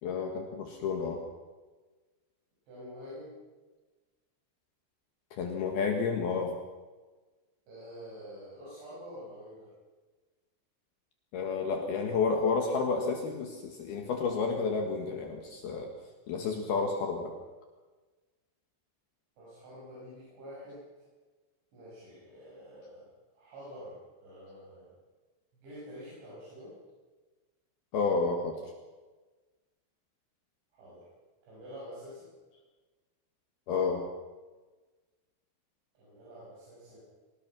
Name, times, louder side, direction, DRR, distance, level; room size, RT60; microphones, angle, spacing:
voice 1, 0.0-1.2 5.3-6.6 11.3-15.9 16.3-17.3 27.9-28.6 33.7-34.1, left 4 dB, 65° left, 2 dB, 3.3 m, -30 dB
voice 2, 2.7-3.3 7.7-9.7 19.4-20.8 21.7-25.0 25.5-26.8 30.7-31.1 31.5-32.3 36.0-37.0, equal, 85° right, -8 dB, 9.6 m, -47 dB
23.0 x 19.5 x 6.1 m, 1.3 s
omnidirectional pair, 5.1 m